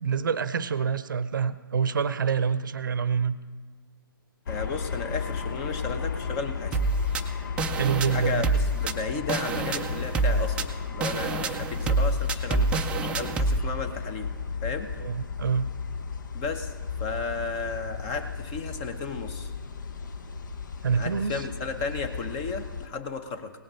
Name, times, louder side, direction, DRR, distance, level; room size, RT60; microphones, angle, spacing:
voice 1, 0.0-3.4 7.7-8.5 15.0-15.7 20.8-21.3, right 6 dB, 60° right, 16 dB, 0.7 m, -26 dB
sound 1, 4.5-22.9, left 5 dB, 55° left, 0.9 m, -35 dB
voice 2, 4.5-6.8 8.1-14.3 14.6-14.9 16.3-16.7 17.0-19.5 21.0-23.5, left 4 dB, 25° left, 8 dB, 1.0 m, -34 dB
sound 2, 6.7-13.6, right 2 dB, 10° right, 0.4 m, -27 dB
17.5 x 7.8 x 5.6 m, 1.5 s
figure-of-eight pair, 135°, 12 cm